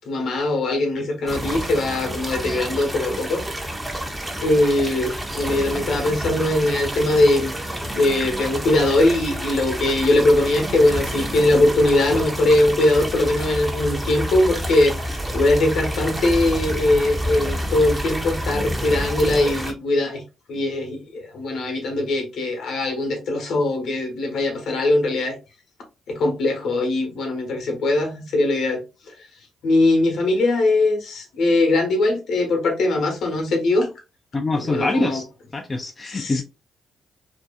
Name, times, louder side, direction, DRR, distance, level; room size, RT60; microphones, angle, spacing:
voice 1, 0.1-3.4 4.4-7.5 7.9-20.2 20.5-25.4 26.1-29.1 29.6-33.9 34.5-35.2 36.1-36.4, left 2 dB, 70° left, 0.9 m, -21 dB
sound 1, 1.3-19.7, equal, 15° right, 0.8 m, -29 dB
voice 2, 34.3-35.3 35.5-36.4, left 2 dB, 35° left, 0.4 m, -24 dB
2.6 x 2.4 x 2.4 m
hypercardioid pair, 45°, 0 cm